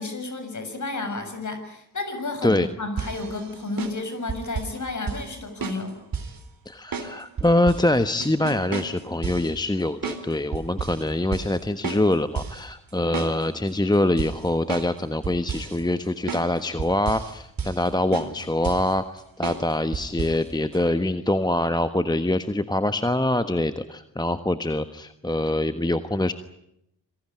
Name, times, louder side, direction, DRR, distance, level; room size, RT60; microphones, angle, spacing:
voice 1, 0.0-6.0, left 2 dB, 35° left, 8 dB, 6.8 m, -32 dB
sound 1, 3.0-4.8 5.1-5.3 5.6-6.4 6.9-7.9 8.2-9.5 10.0-10.2 10.5-11.0 11.3-11.6 11.8-12.6 12.9-13.7 14.2-15.0 15.2-15.8 16.3-16.5 16.8-17.3 17.6-17.9 18.1-18.9 19.4-19.7 19.9-20.4 20.7-20.8, right 5 dB, 45° right, 3.9 m, -32 dB
voice 2, 6.7-26.3, left 1 dB, 10° left, 11 dB, 1.3 m, -24 dB
26.5 x 17.5 x 9.9 m, 0.79 s
hypercardioid pair, 40°, 48 cm